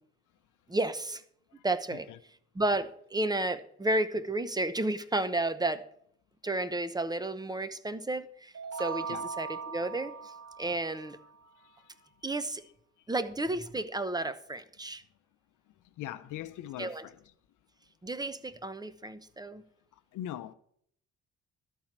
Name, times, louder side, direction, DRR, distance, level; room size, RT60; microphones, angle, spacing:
voice 1, 0.7-1.2 1.6-2.1 2.5-5.8 6.4-10.3 10.6-11.2 12.2-12.6 13.1-15.0 16.8-17.0 18.0-19.6, right 2 dB, 15° right, 0.8 m, -32 dB
sound 1, 8.5-11.3, right 5 dB, 60° right, 1.0 m, -39 dB
voice 2, 16.0-17.2 20.1-20.5, left 12 dB, 85° left, 0.8 m, -41 dB
13.0 x 4.6 x 7.4 m
cardioid pair, 90°, 30 cm